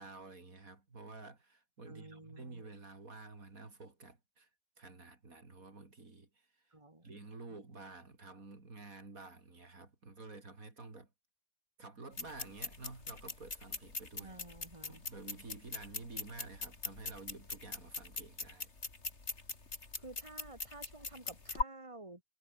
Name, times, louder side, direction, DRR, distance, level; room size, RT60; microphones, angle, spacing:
voice 1, 0.0-4.5 4.8-6.3 7.0-11.1 11.8-14.4 14.9-18.7, right 3 dB, 75° right, 4.0 m, -51 dB
voice 2, 1.9-2.6 6.7-7.1 14.2-15.0 20.0-22.2, right 2 dB, 20° right, 3.7 m, -52 dB
sound 1, 12.1-21.6, left 3 dB, 50° left, 3.1 m, -42 dB
omnidirectional pair, 1.5 m